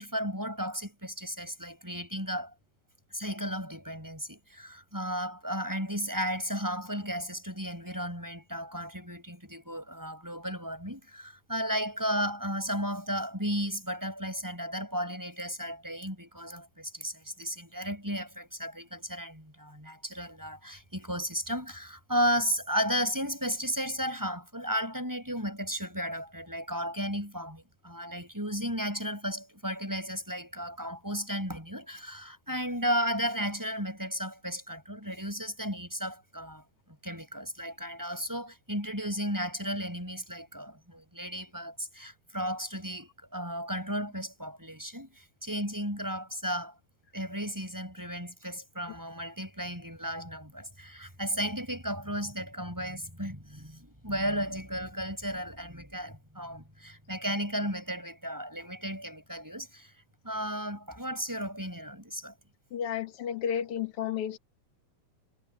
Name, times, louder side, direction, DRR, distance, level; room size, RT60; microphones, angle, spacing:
voice 1, 0.0-2.5 3.1-46.7 47.1-59.9 60.2-62.3, equal, 5° right, 7.9 m, -34 dB
voice 2, 62.7-64.4, left 8 dB, 55° left, 2.3 m, -32 dB
omnidirectional pair, 3.6 m